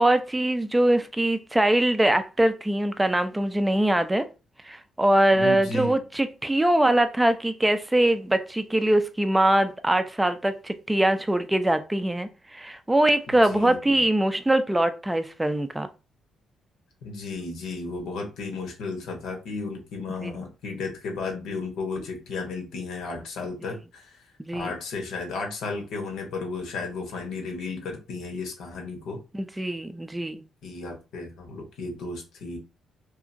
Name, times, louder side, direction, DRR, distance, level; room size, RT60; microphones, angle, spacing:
voice 1, 0.0-4.3 4.6-15.9 20.2-20.4 24.4-24.7 29.3-30.4, right 1 dB, 10° right, 0.4 m, -23 dB
voice 2, 5.3-6.0 13.4-14.0 17.0-24.2 24.5-29.2 30.6-32.6, left 3 dB, 80° left, 0.9 m, -34 dB
2.8 x 2.5 x 2.5 m
cardioid pair, 90°, 0 cm